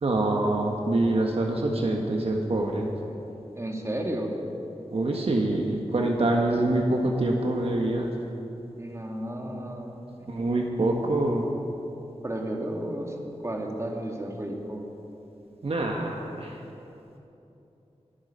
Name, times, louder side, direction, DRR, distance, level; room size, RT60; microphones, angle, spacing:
voice 1, 0.0-2.9 4.9-8.1 10.3-11.5 15.6-16.5, right 2 dB, 60° right, 0 dB, 1.4 m, -25 dB
voice 2, 3.6-4.3 8.8-10.3 12.2-13.2 13.4-14.9, right 1 dB, 25° right, 0 dB, 1.9 m, -33 dB
20.5 x 9.4 x 5.6 m, 2.9 s
wide cardioid pair, 90°, 11 cm